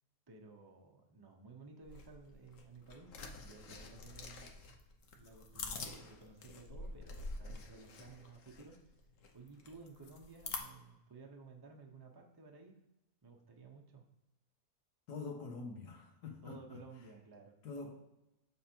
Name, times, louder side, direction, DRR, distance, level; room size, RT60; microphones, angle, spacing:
voice 1, 0.3-3.1 3.4-4.8 5.1-8.8 9.3-12.7 13.2-14.0 16.4-17.5, right 4 dB, 30° right, 2 dB, 0.4 m, -55 dB
sound 1, 1.8-10.6, left 3 dB, 55° left, 1.1 m, -47 dB
voice 2, 15.1-16.8 17.6-18.0, left 4 dB, 90° left, 1 dB, 1.8 m, -45 dB
7.3 x 3.6 x 4.4 m, 0.92 s
omnidirectional pair, 1.7 m